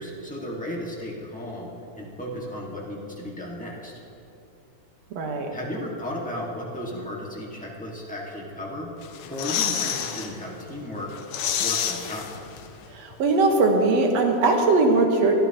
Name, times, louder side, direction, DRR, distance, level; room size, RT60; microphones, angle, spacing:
voice 1, 0.0-3.9 5.5-11.1 11.6-12.4, left 1 dB, 5° left, -4 dB, 0.7 m, -35 dB
voice 2, 5.1-5.5 12.9-15.3, right 3 dB, 65° right, 2 dB, 2.3 m, -20 dB
sound 1, 9.0-10.3 10.7-10.8 11.1-12.9 13.1-13.2, left 8 dB, 75° left, 1.3 m, -28 dB
21.5 x 12.0 x 2.9 m, 2.9 s
omnidirectional pair, 3.4 m